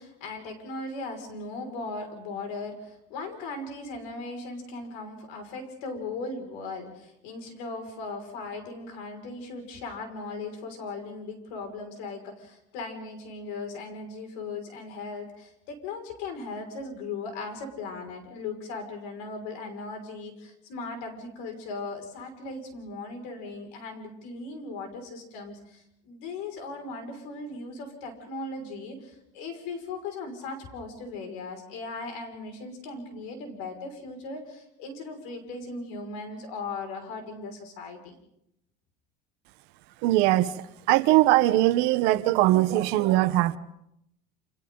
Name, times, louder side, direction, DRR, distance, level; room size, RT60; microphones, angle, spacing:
voice 1, 0.0-38.2, left 3 dB, 80° left, 5.8 m, -38 dB
voice 2, 40.0-40.5 40.9-43.6, right 16 dB, 65° right, 1.1 m, -21 dB
29.0 x 28.0 x 4.0 m
cardioid pair, 150°, 18 cm